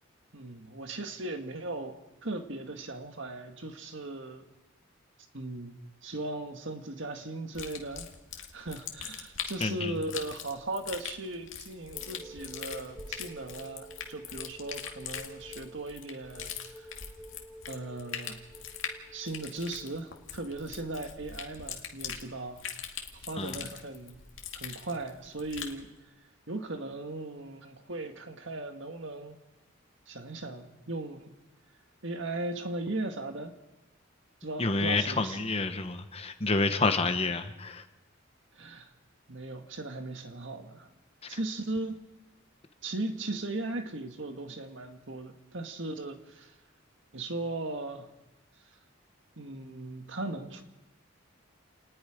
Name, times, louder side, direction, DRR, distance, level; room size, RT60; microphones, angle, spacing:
voice 1, 0.3-4.5 5.3-8.1 8.4-16.5 16.8-16.9 17.7-18.4 19.1-22.6 23.2-24.2 24.5-25.9 26.5-29.4 30.1-31.3 32.0-33.5 34.4-35.5 38.6-38.9 39.3-40.9 41.3-42.0 42.8-46.5 47.1-48.1 49.4-50.6, right 2 dB, 65° right, 6 dB, 1.9 m, -38 dB
sound 1, 7.5-25.8, left 8 dB, 70° left, 2.3 m, -42 dB
voice 2, 9.6-10.0 23.4-23.6 34.6-37.8 41.2-41.4, left 3 dB, 30° left, 8 dB, 1.1 m, -29 dB
sound 2, 11.9-20.0, right 1 dB, 5° right, 1.8 m, -50 dB
29.0 x 19.5 x 5.1 m, 1.0 s
head